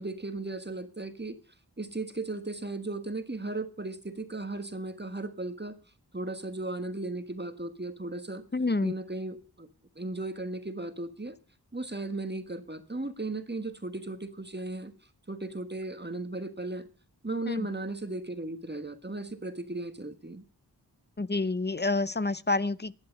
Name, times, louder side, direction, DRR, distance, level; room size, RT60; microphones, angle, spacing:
voice 1, 0.0-1.4 1.8-5.8 6.1-8.4 8.8-9.7 10.0-11.4 11.7-14.9 15.3-16.9 17.2-20.4, right 2 dB, 25° right, 1.5 m, -36 dB
voice 2, 8.5-8.9 17.5-17.7 21.2-22.9, left 3 dB, 30° left, 0.6 m, -28 dB
15.5 x 10.5 x 5.3 m
wide cardioid pair, 45°, 38 cm